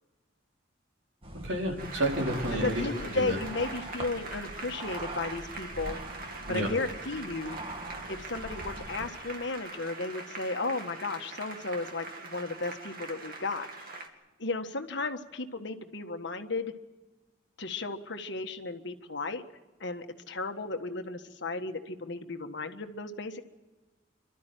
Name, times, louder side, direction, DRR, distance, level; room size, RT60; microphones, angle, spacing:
sound 1, 1.2-9.1, right 1 dB, 30° right, 1.9 m, -42 dB
voice 1, 1.4-2.8 3.2-3.4 6.5-6.7, right 1 dB, 80° right, 0 dB, 4.7 m, -30 dB
Applause, 1.8-14.1, right 3 dB, 50° right, 2.5 m, -43 dB
voice 2, 2.5-6.0 6.5-7.6 8.1-14.0 14.4-16.7 17.6-19.4 19.8-23.4, left 3 dB, 65° left, 6 dB, 1.6 m, -34 dB
28.0 x 13.0 x 9.2 m, 1.2 s
head